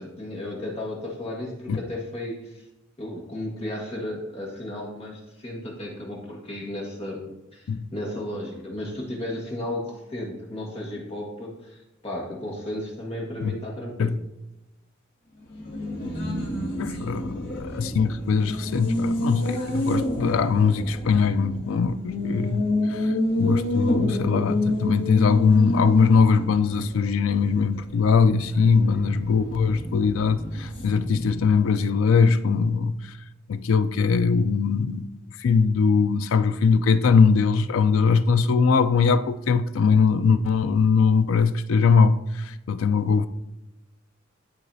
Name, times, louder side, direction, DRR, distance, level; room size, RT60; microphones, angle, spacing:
voice 1, 0.0-2.5 3.0-14.1, left 1 dB, 30° left, 1.5 m, -34 dB
Race car auto racing, 15.4-31.7, left 1 dB, 50° left, 2.2 m, -29 dB
voice 2, 16.8-33.0 33.5-35.1 35.4-43.3, left 5 dB, 80° left, 0.4 m, -21 dB
11.5 x 4.0 x 2.7 m
head